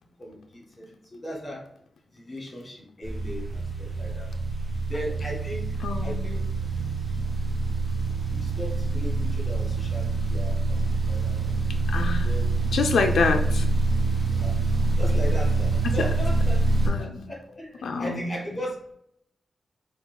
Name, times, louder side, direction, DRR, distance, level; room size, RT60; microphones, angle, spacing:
voice 1, 0.2-1.7 2.1-4.3 4.9-5.7 6.0-6.4 8.3-11.4 12.2-12.5 14.4-14.6 15.0-16.6 16.9-18.9, equal, 20° left, -1 dB, 1.7 m, -37 dB
sound 1, 3.0-16.9, right 3 dB, 35° right, 1.3 m, -25 dB
voice 2, 5.8-6.4 11.9-12.3 12.7-13.7 16.0-16.1 16.9-17.3 17.8-18.3, left 4 dB, 85° left, 4 dB, 0.4 m, -26 dB
5.6 x 2.5 x 3.8 m, 0.69 s
wide cardioid pair, 135°, 0 cm